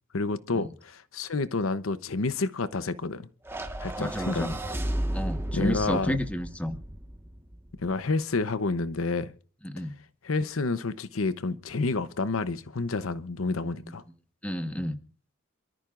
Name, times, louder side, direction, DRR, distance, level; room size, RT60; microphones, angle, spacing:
voice 1, 0.1-3.3 3.8-4.6 5.5-6.2 7.8-9.3 10.2-14.0, left 3 dB, 85° left, 0.8 m, -29 dB
sound 1, 3.4-7.9, right 1 dB, 10° right, 1.4 m, -34 dB
voice 2, 4.0-4.5 5.1-6.8 9.6-10.0 14.4-15.0, equal, 5° left, 1.2 m, -31 dB
28.0 x 13.5 x 2.5 m
head